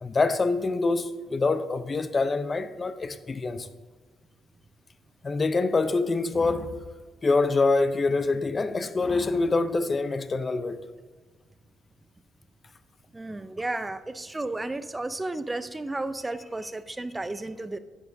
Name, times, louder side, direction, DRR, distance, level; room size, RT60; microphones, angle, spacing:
voice 1, 0.0-3.7 5.2-6.8 7.2-10.8, left 3 dB, 30° left, 0.6 m, -25 dB
voice 2, 13.1-17.8, right 2 dB, 15° right, 0.5 m, -33 dB
10.5 x 9.2 x 2.7 m
cardioid pair, 85°, 0 cm